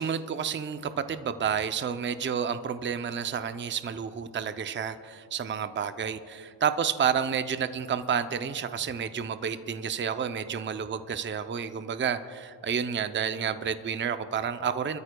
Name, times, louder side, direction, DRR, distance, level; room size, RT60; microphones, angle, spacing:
voice 1, 0.0-15.0, right 7 dB, 25° right, 10 dB, 0.5 m, -30 dB
26.0 x 13.5 x 2.2 m, 2.4 s
cardioid pair, 90°, 44 cm